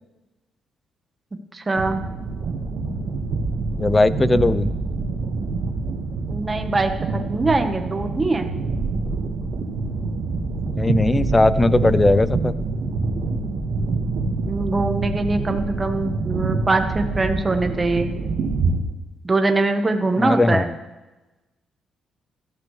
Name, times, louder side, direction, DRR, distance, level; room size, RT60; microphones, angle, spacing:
voice 1, 1.5-2.1 6.3-6.9 7.3-8.5 14.4-18.2 19.2-20.7, right 2 dB, 25° right, 6 dB, 1.2 m, -22 dB
sound 1, 1.8-18.8, right 3 dB, 65° right, 1.6 m, -26 dB
voice 2, 3.8-4.7 10.7-12.5 20.2-20.8, left 2 dB, 20° left, 16 dB, 0.6 m, -18 dB
16.5 x 13.0 x 3.3 m, 1.1 s
cardioid pair, 90°, 0 cm